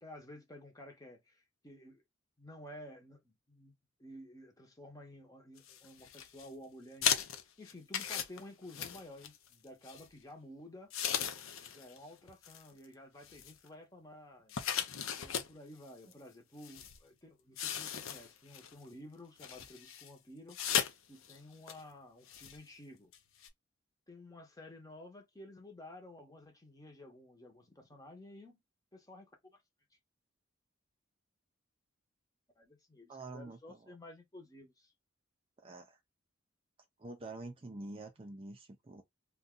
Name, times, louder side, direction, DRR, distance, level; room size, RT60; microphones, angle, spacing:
voice 1, 0.0-2.0 2.4-3.7 4.0-10.9 11.6-14.6 15.2-20.6 21.1-23.1 24.1-28.6 28.9-29.6 32.6-34.9, left 1 dB, 20° left, 0.8 m, -53 dB
sound 1, 5.6-6.5 7.0-9.5 9.9-10.1 10.9-12.0 12.3-12.6 13.2-13.7 14.5-15.5 16.1-16.2 16.6-17.0 17.6-18.7 19.4-20.1 20.5-20.9 21.2-21.4 21.7-21.8 22.3-22.6 23.1-23.2 23.4-23.5, left 8 dB, 90° left, 0.6 m, -36 dB
voice 2, 33.1-33.8 35.6-36.0 37.0-39.0, right 2 dB, 30° right, 0.4 m, -46 dB
2.6 x 2.2 x 3.7 m
head